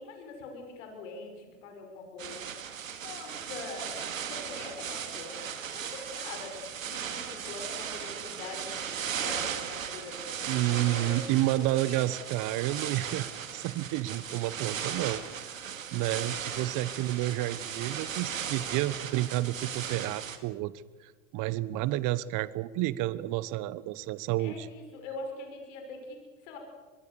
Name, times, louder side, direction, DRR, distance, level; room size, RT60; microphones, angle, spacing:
voice 1, 0.0-2.7 3.0-11.3 11.8-12.2 16.0-16.4 24.4-26.6, left 3 dB, 70° left, 3 dB, 5.9 m, -44 dB
sound 1, 2.2-20.4, right 8 dB, 85° right, 2.1 m, -37 dB
voice 2, 10.5-20.7 21.0-24.7, right 15 dB, 50° right, 18 dB, 1.0 m, -30 dB
24.0 x 22.0 x 6.9 m, 1.4 s
hypercardioid pair, 80°, 39 cm